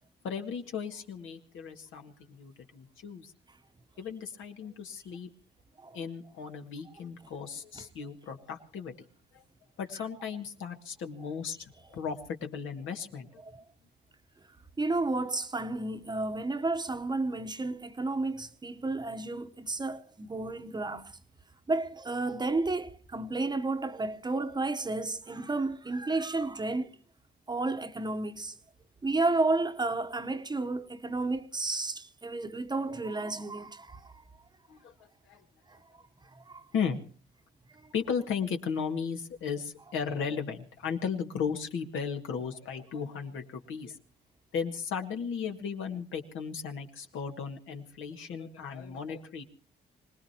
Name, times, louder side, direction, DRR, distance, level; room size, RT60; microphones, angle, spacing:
voice 1, 0.2-3.3 4.0-5.3 5.9-9.0 9.3-9.4 9.8-13.4 34.7-35.4 36.7-37.0 37.9-44.0 44.5-49.4, left 6 dB, 80° left, 2.0 m, -36 dB
voice 2, 14.8-21.2 21.7-26.9 27.5-28.6 29.0-34.1 35.7-35.8 36.3-36.6 37.8-37.9, right 3 dB, 20° right, 1.0 m, -32 dB
25.5 x 19.0 x 2.9 m
cardioid pair, 90°, 20 cm